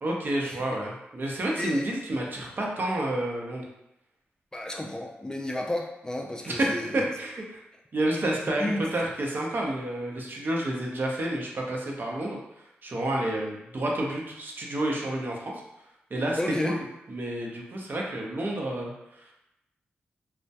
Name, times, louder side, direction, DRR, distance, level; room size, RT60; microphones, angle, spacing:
voice 1, 0.0-3.7 6.5-7.6 7.9-12.4 12.8-15.5 16.1-16.4 16.6-16.8 17.1-18.9, right 1 dB, 50° right, -2 dB, 0.6 m, -29 dB
voice 2, 4.5-7.0 8.6-8.8 16.4-16.8, left 1 dB, 15° left, 1 dB, 0.3 m, -32 dB
2.2 x 2.1 x 2.7 m, 0.86 s
cardioid pair, 55°, 4 cm